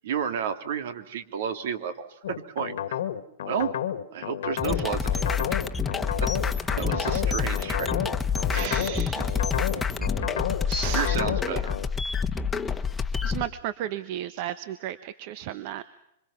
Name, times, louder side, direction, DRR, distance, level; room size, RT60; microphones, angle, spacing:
voice 1, 0.0-2.8 3.4-3.8 4.1-5.6 6.2-6.3 6.8-7.9 9.5-9.8 10.9-11.8, right 7 dB, 70° right, 8 dB, 3.1 m, -31 dB
sound 1, 2.2-11.9, left 10 dB, 70° left, 1.8 m, -31 dB
sound 2, 4.6-13.4, left 6 dB, 15° left, 1.4 m, -28 dB
voice 2, 6.9-7.2 8.5-9.6 10.7-11.2 13.2-15.9, right 12 dB, 50° right, 13 dB, 1.2 m, -35 dB
26.5 x 26.0 x 5.9 m, 0.80 s
hypercardioid pair, 125°, 0 cm